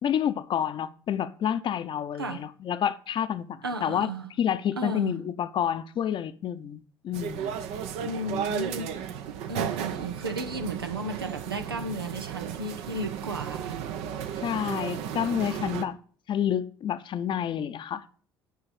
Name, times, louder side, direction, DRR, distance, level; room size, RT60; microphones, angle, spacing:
voice 1, 0.0-4.1 4.4-7.5 14.4-16.0 16.3-18.1, left 9 dB, 45° left, 0.8 m, -29 dB
voice 2, 3.6-4.3 4.8-5.2 8.0-8.9 9.5-13.9, right 2 dB, 85° right, 0.9 m, -34 dB
sound 1, 7.1-15.8, right 9 dB, 60° right, 1.0 m, -34 dB
9.3 x 5.7 x 8.2 m
figure-of-eight pair, 55°, 12 cm